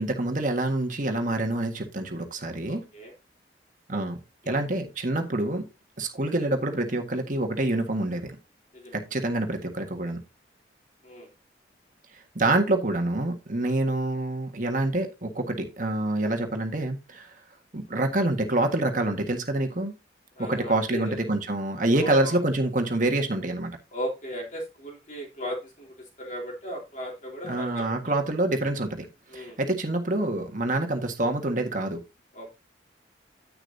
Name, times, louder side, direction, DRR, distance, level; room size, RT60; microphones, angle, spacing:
voice 1, 0.0-2.9 3.9-4.2 4.4-5.7 6.0-8.4 8.9-10.2 12.3-17.3 17.7-19.9 20.4-23.7 27.4-29.1 29.3-32.0, right 2 dB, 45° right, 1.6 m, -26 dB
voice 2, 2.7-3.1 4.4-4.6 8.7-9.0 11.0-11.3 20.4-21.3 22.0-22.4 23.9-28.1 29.3-29.6 32.3-32.5, equal, 45° left, 3.1 m, -37 dB
10.0 x 8.9 x 2.7 m
head